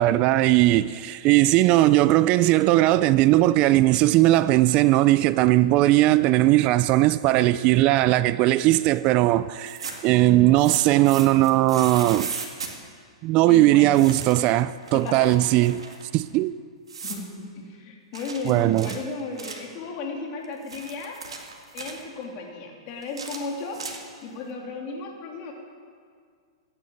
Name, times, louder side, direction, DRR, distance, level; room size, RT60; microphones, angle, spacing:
voice 1, 0.0-12.3 13.2-15.8 16.1-16.5 18.5-18.9, right 16 dB, 40° right, 0.4 m, -19 dB
sound 1, 9.5-10.1 10.6-12.7 13.9-14.5 14.8-16.0 16.9-17.3 18.1-19.7 20.4-22.0 23.0-24.3, right 5 dB, 85° right, 2.0 m, -37 dB
voice 2, 13.5-14.0 14.9-15.6 17.0-21.2 21.7-23.8 24.2-25.5, left 3 dB, 45° left, 3.0 m, -35 dB
15.5 x 10.0 x 7.1 m
hypercardioid pair, 115°, 3 cm